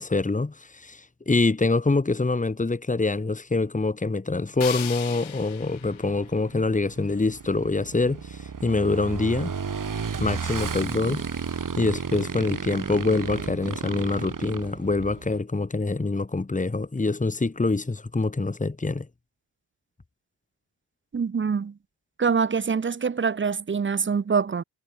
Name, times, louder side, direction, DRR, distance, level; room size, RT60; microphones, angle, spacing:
voice 1, 0.0-9.5 10.2-11.3 11.8-19.1, left 3 dB, 15° left, 2.6 m, -25 dB
sound 1, 4.6-7.6, left 11 dB, 90° left, 3.3 m, -39 dB
Motorcycle / Engine, 5.7-15.4, right 6 dB, 40° right, 7.0 m, -33 dB
voice 2, 21.1-21.8 22.2-24.6, right 5 dB, 25° right, 0.8 m, -25 dB
wide cardioid pair, 130°, 46 cm